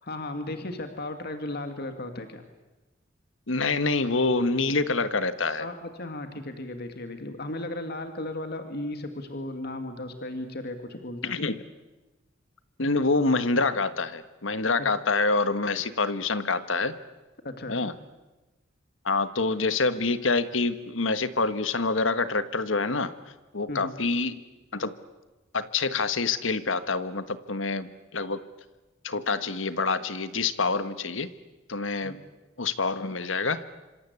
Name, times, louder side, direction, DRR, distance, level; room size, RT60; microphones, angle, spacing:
voice 1, 0.0-2.4 5.6-11.3 17.4-17.9 23.7-23.9 32.0-32.2, left 1 dB, 55° left, 7 dB, 2.4 m, -35 dB
voice 2, 3.5-5.7 11.2-11.6 12.8-17.0 17.7-17.9 19.0-23.1 23.5-24.4 24.7-24.9 25.5-28.4 29.0-31.3 31.7-32.1 32.6-33.6, left 3 dB, 80° left, 12 dB, 1.5 m, -26 dB
26.5 x 26.5 x 8.4 m, 1.1 s
head